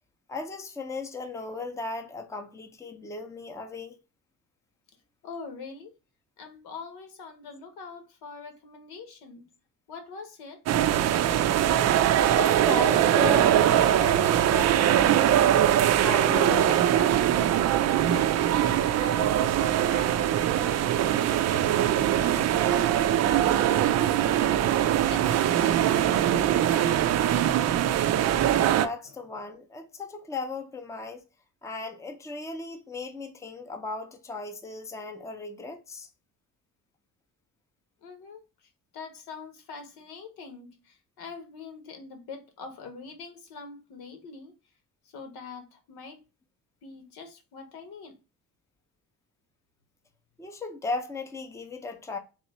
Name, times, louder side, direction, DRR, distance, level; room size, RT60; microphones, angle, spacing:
voice 1, 0.3-4.0 12.2-15.5 16.0-17.2 28.7-31.2 31.6-36.1 50.4-52.2, left 3 dB, 10° left, 0.6 m, -36 dB
voice 2, 5.2-5.9 6.4-9.5 9.9-10.6 18.3-24.0 24.2-24.6 25.0-27.5 38.0-38.4 38.9-44.5 45.1-46.2 46.8-48.1, left 4 dB, 80° left, 1.3 m, -44 dB
sound 1, 10.7-28.9, right 11 dB, 45° right, 0.4 m, -22 dB
3.6 x 2.9 x 4.2 m
cardioid pair, 135°, 37 cm